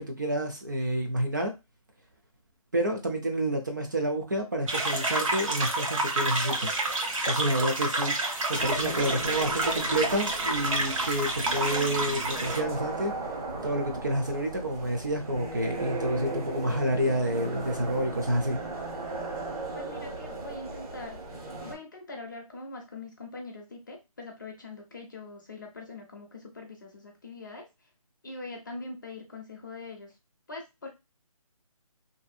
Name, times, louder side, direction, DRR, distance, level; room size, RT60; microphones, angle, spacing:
voice 1, 0.0-1.5 2.7-6.8 7.3-8.1 8.5-13.1 13.6-18.6, right 1 dB, 30° right, 3 dB, 0.4 m, -29 dB
sound 1, 4.7-12.6, right 2 dB, 60° right, 0.8 m, -29 dB
sound 2, 8.5-21.7, right 2 dB, 75° right, 1.4 m, -37 dB
voice 2, 19.7-21.2 21.6-27.7 28.2-30.1 30.5-30.9, left 3 dB, 35° left, 1 dB, 0.4 m, -42 dB
2.6 x 2.3 x 2.4 m, 0.24 s
hypercardioid pair, 165°, 19 cm